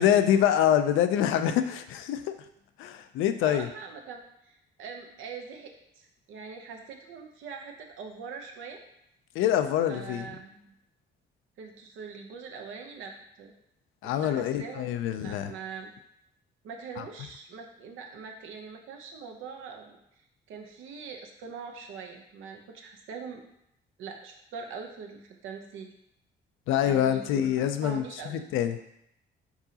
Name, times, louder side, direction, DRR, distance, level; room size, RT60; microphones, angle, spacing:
voice 1, 0.0-2.3 2.8-3.7 9.4-10.3 14.0-15.5 17.0-17.1 26.7-28.0 28.3-28.8, left 10 dB, 90° left, 9 dB, 0.4 m, -25 dB
voice 2, 3.4-4.2 4.4-8.8 9.9-10.7 11.6-13.1 13.4-13.5 14.0-15.9 16.6-20.0 20.5-23.4 24.0-25.9 26.8-27.5 27.7-28.4, right 5 dB, 85° right, 2 dB, 0.7 m, -42 dB
4.7 x 3.8 x 2.8 m, 0.77 s
cardioid pair, 90°, 20 cm